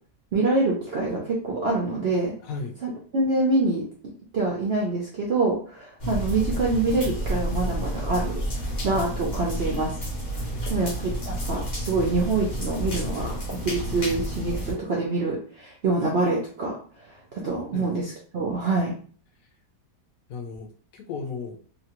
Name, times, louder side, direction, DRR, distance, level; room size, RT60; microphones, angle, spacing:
voice 1, 0.3-2.3 2.8-3.9 4.3-9.9 10.7-16.8 17.3-18.9, right 3 dB, 85° right, -3 dB, 0.5 m, -26 dB
voice 2, 2.4-2.8 10.5-10.9 17.7-17.9 20.3-21.6, left 4 dB, 65° left, 2 dB, 0.9 m, -35 dB
sound 1, 6.0-14.7, equal, 45° left, 0.6 m, -30 dB
2.9 x 2.3 x 2.9 m, 0.43 s
omnidirectional pair, 1.8 m